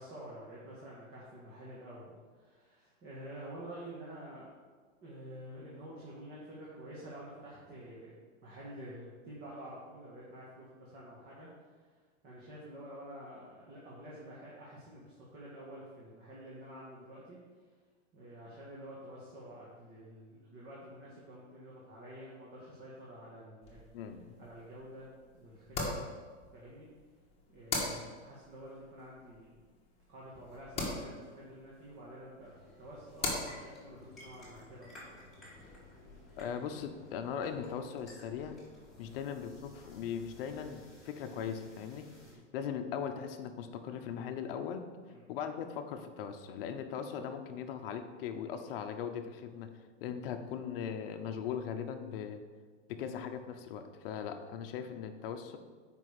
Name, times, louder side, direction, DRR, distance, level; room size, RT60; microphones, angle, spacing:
voice 1, 0.0-4.5 5.0-8.1 8.4-11.5 11.9-12.0 12.2-17.4 18.1-23.8 24.4-26.0 26.5-26.9 27.5-29.5 30.1-35.0 39.0-39.2 42.2-42.4 45.1-45.3, right 1 dB, 25° right, -6 dB, 1.5 m, -49 dB
sound 1, 23.6-36.5, left 3 dB, 15° left, 1.6 m, -43 dB
voice 2, 23.9-24.4 36.4-38.6 39.0-42.1 42.5-44.8 45.3-52.4 52.9-55.6, left 7 dB, 50° left, 7 dB, 0.8 m, -39 dB
sound 2, 32.4-42.3, left 1 dB, ahead, 2.3 m, -55 dB
7.5 x 5.2 x 4.9 m, 1.5 s
supercardioid pair, 150°, 37 cm